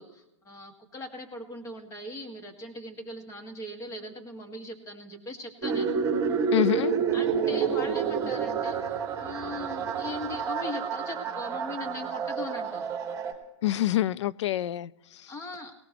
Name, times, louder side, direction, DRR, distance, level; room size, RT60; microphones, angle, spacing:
voice 1, 0.0-5.9 6.7-12.9 15.3-15.7, left 2 dB, 20° left, 5 dB, 1.9 m, -40 dB
sound 1, 5.6-13.3, right 6 dB, 20° right, 2.3 m, -29 dB
voice 2, 6.5-6.9 13.6-15.3, left 13 dB, 65° left, 20 dB, 0.4 m, -27 dB
18.5 x 18.0 x 3.1 m, 0.91 s
hypercardioid pair, 130°, 16 cm